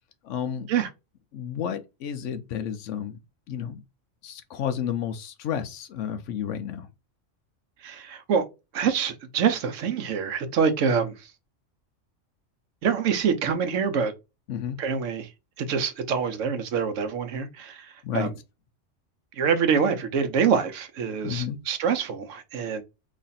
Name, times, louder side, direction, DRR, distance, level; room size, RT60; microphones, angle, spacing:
voice 1, 0.2-0.7 1.3-3.2 3.5-3.8 4.2-6.9 14.5-14.8 18.0-18.3 21.2-21.6, left 8 dB, 80° left, 1.0 m, -31 dB
voice 2, 7.8-8.4 8.7-11.3 12.8-14.1 14.8-15.3 15.6-18.3 19.3-22.8, right 6 dB, 80° right, 1.1 m, -25 dB
3.2 x 2.4 x 4.0 m
omnidirectional pair, 1.3 m